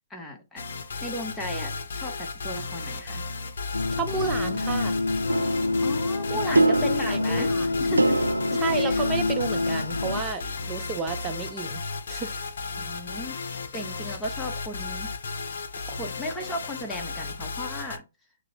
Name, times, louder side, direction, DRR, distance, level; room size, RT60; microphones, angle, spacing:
voice 1, 0.1-0.6 1.0-3.2 5.8-7.5 7.8-8.2 8.5-9.0 12.7-15.1 15.9-18.0, left 1 dB, 10° left, 1.0 m, -35 dB
sound 1, 0.6-18.0, left 4 dB, 60° left, 0.7 m, -35 dB
sound 2, 3.7-10.2, left 3 dB, 85° left, 0.3 m, -27 dB
voice 2, 4.0-5.0 6.3-6.6 7.0-7.7 8.6-11.8 12.1-12.4, right 5 dB, 20° right, 0.8 m, -31 dB
sound 3, 5.3-9.8, right 2 dB, 90° right, 0.3 m, -27 dB
6.5 x 2.2 x 2.9 m
figure-of-eight pair, 130°, 0 cm